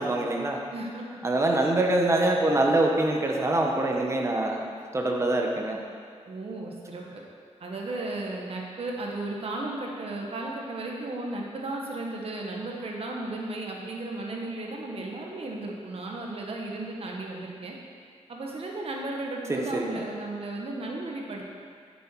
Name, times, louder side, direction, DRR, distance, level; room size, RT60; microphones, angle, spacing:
voice 1, 0.0-0.6 1.2-4.6 4.9-5.8 19.5-20.0, right 2 dB, 25° right, 1 dB, 1.0 m, -24 dB
voice 2, 0.7-1.0 6.3-7.2 7.6-17.8 18.3-21.5, right 2 dB, 55° right, -1 dB, 1.4 m, -35 dB
10.0 x 7.1 x 4.6 m, 2.1 s
wide cardioid pair, 150°, 12 cm